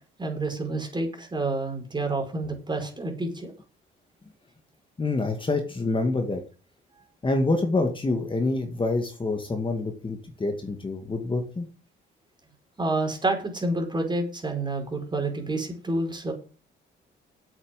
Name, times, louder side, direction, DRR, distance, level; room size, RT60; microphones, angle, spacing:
voice 1, 0.2-3.5 12.8-16.3, right 2 dB, 20° right, 3 dB, 4.8 m, -28 dB
voice 2, 5.0-6.4 7.2-11.7, left 2 dB, 25° left, 4 dB, 2.2 m, -26 dB
8.4 x 7.6 x 8.3 m, 0.37 s
cardioid pair, 90°, 20 cm